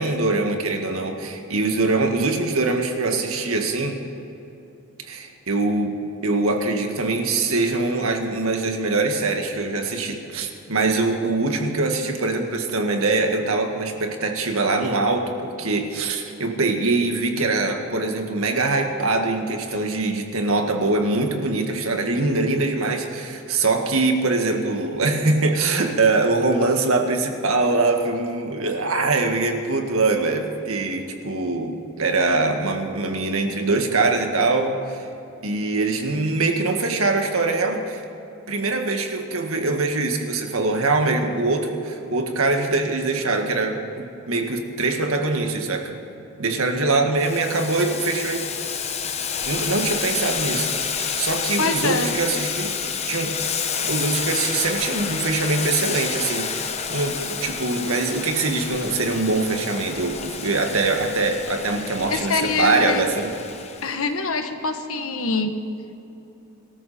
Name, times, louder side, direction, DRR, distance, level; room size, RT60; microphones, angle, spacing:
voice 1, 0.0-4.0 5.1-6.0 6.2-35.0 35.4-38.0 38.5-45.9 46.4-48.4 49.5-50.7 51.2-52.7 53.1-53.4 53.8-63.3, right 3 dB, 75° right, 4 dB, 1.8 m, -23 dB
Boiling, 47.2-64.0, left 6 dB, 30° left, 0.9 m, -29 dB
voice 2, 51.6-52.1 62.1-63.1 63.8-65.5, left 3 dB, 75° left, 7 dB, 1.3 m, -24 dB
24.0 x 13.5 x 4.3 m, 2.9 s
head